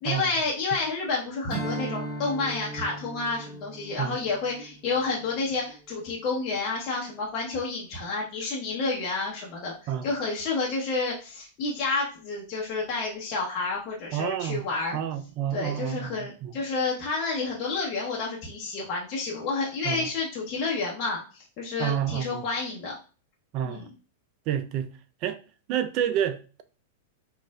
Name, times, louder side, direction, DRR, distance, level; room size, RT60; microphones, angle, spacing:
voice 1, 0.0-9.7 10.0-15.0 15.5-22.9 23.6-23.9, left 3 dB, 40° left, 0.9 m, -30 dB
Strum, 1.5-6.2, right 2 dB, 5° right, 1.3 m, -38 dB
voice 2, 14.1-14.7 14.9-16.5 19.8-20.1 21.8-22.4 23.5-23.9 24.5-24.9 25.2-25.4 25.7-26.6, right 10 dB, 45° right, 0.4 m, -29 dB
4.0 x 2.5 x 2.3 m
hypercardioid pair, 105°, 0 cm